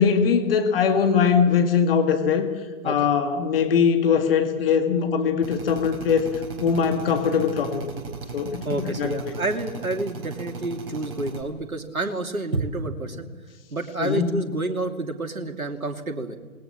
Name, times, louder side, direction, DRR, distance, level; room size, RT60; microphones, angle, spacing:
voice 1, 0.0-2.5 2.8-6.3 6.6-7.9 8.3-9.3 14.0-14.4, left 6 dB, 40° left, 6 dB, 2.1 m, -21 dB
Drill, 5.4-11.4, right 4 dB, 45° right, 4.6 m, -37 dB
voice 2, 8.6-13.3 13.7-16.4, right 2 dB, 80° right, 4 dB, 2.9 m, -29 dB
28.5 x 20.0 x 7.4 m, 1.4 s
figure-of-eight pair, 135°, 42 cm